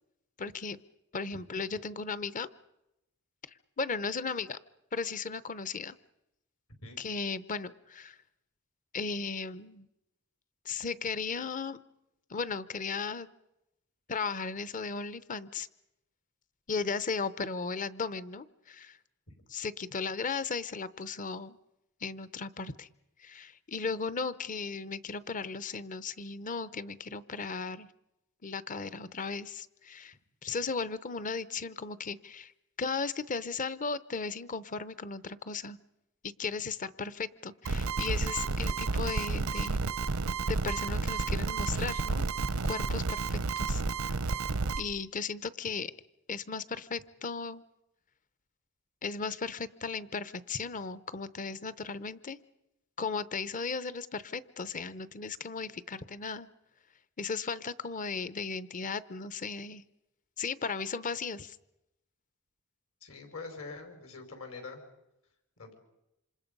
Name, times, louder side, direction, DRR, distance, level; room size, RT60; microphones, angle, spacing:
voice 1, 0.4-0.8 1.1-2.5 3.8-4.6 4.9-6.0 7.0-8.2 8.9-9.9 10.6-11.8 12.3-13.3 14.1-15.7 16.7-19.0 19.5-21.6 22.0-22.9 23.2-27.9 28.4-30.1 30.4-32.5 32.8-35.8 36.2-39.8 40.5-42.3 42.6-44.1 44.8-45.9 46.3-47.6 49.0-52.4 53.0-56.5 57.2-59.8 60.4-61.6, left 4 dB, 35° left, 16 dB, 0.8 m, -36 dB
sound 1, 37.7-44.8, right 4 dB, 85° right, 0.8 m, -31 dB
voice 2, 63.0-64.8 65.6-65.7, left 3 dB, 70° left, 4 dB, 5.3 m, -44 dB
27.5 x 26.5 x 5.4 m, 0.88 s
head